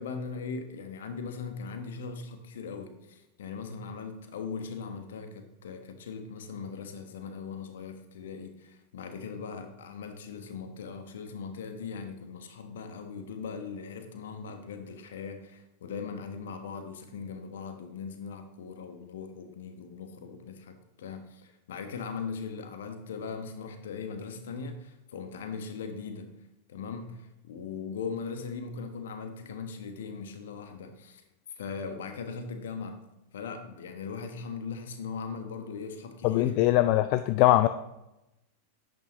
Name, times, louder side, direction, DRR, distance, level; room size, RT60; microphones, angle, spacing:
voice 1, 0.0-26.3 26.7-31.2 31.6-33.0 33.3-36.6, left 5 dB, 60° left, 7 dB, 1.3 m, -39 dB
voice 2, 36.2-37.7, left 15 dB, 45° left, 11 dB, 0.4 m, -22 dB
10.5 x 8.9 x 3.1 m, 0.92 s
figure-of-eight pair, 90°, 0 cm